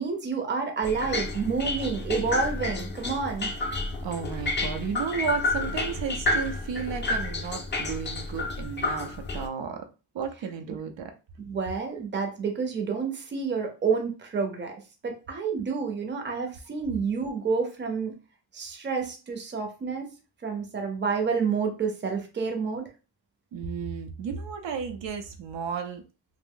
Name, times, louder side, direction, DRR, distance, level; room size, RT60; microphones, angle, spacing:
voice 1, 0.0-3.5 10.7-10.8 11.4-14.7 15.0-18.1 18.5-20.1 20.4-22.9, right 5 dB, 25° right, 3 dB, 0.5 m, -29 dB
sound 1, 0.8-9.5, left 3 dB, 25° left, 0.4 m, -30 dB
voice 2, 4.0-9.8 10.1-11.1 23.5-26.0, right 6 dB, 80° right, 5 dB, 0.6 m, -33 dB
2.5 x 2.0 x 3.6 m, 0.32 s
wide cardioid pair, 140°, 44 cm